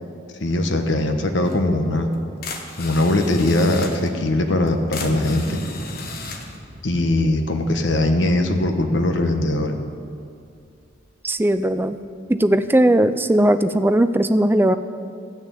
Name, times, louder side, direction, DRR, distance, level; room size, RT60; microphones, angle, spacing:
voice 1, 0.4-2.1 2.8-5.6 6.8-9.8, left 1 dB, 70° left, 5 dB, 1.1 m, -20 dB
sound 1, 1.4-1.6 2.1-2.2 2.4-4.1 4.7-6.6, left 4 dB, 50° left, 1.2 m, -35 dB
Thunder, 5.0-9.8 10.1-10.2 10.4-10.9 11.4-12.6, equal, 45° right, 1.6 m, -36 dB
voice 2, 11.2-12.0 12.3-14.8, right 1 dB, 10° right, 10 dB, 0.4 m, -18 dB
13.5 x 6.5 x 9.1 m, 2.4 s
head